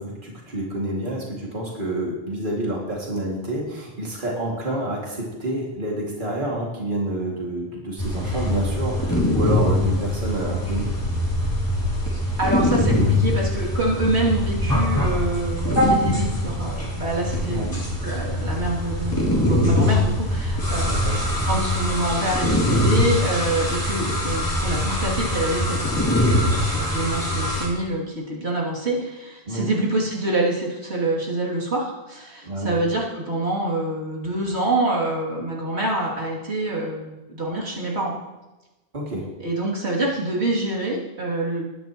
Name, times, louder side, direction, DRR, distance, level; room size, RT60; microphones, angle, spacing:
voice 1, 0.0-10.9 17.5-17.7 20.8-21.2 29.5-29.7 32.4-32.7 38.9-39.2, right 1 dB, 50° right, -3 dB, 2.5 m, -28 dB
sound 1, 8.0-27.7, left 1 dB, 20° left, 2.9 m, -23 dB
voice 2, 12.1-21.1 21.5-38.1 39.4-41.7, right 2 dB, 90° right, -5 dB, 3.0 m, -26 dB
20.0 x 10.5 x 3.0 m, 1.1 s
omnidirectional pair, 1.1 m